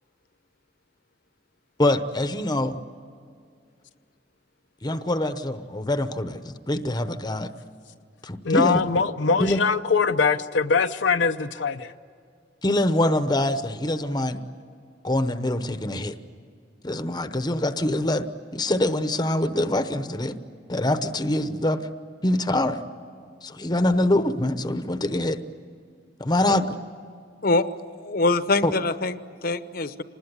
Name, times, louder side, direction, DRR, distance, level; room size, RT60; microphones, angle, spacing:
voice 1, 1.8-2.8 4.8-7.5 8.2-8.8 9.4-9.6 12.6-14.4 15.0-16.2 16.8-18.3 18.5-20.3 20.7-21.8 22.2-22.8 23.4-25.4 26.2-26.8 28.6-28.7, left 1 dB, 20° left, 10 dB, 0.9 m, -24 dB
voice 2, 8.4-11.9, left 5 dB, 75° left, 7 dB, 0.7 m, -22 dB
voice 3, 28.0-30.0, left 2 dB, 50° left, 12 dB, 1.0 m, -24 dB
26.5 x 20.0 x 9.8 m, 2.3 s
head